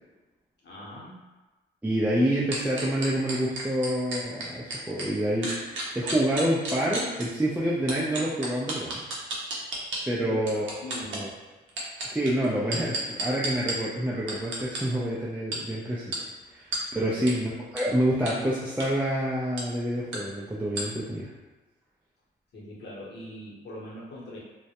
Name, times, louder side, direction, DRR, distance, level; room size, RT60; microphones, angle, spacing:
voice 1, 0.6-1.1 10.2-10.4 10.8-11.3 16.9-17.3 22.5-24.4, left 1 dB, 65° left, -5 dB, 0.9 m, -41 dB
voice 2, 1.8-9.0 10.1-10.7 11.1-11.3 12.1-16.2 16.5-21.3, right 1 dB, 10° right, -7 dB, 0.4 m, -27 dB
sound 1, 2.5-5.1 5.4-7.2 7.9-10.0 10.5-11.2 11.7-13.7 14.3-14.8 15.5-15.6 16.1-16.2 16.7-16.8 17.3-17.4 17.8-17.9 18.3-18.4 18.7-18.9 19.6-19.7 20.1-20.2 20.8-20.9, right 2 dB, 80° right, 0.6 m, -32 dB
2.2 x 2.1 x 2.8 m, 1.2 s
cardioid pair, 70°, 19 cm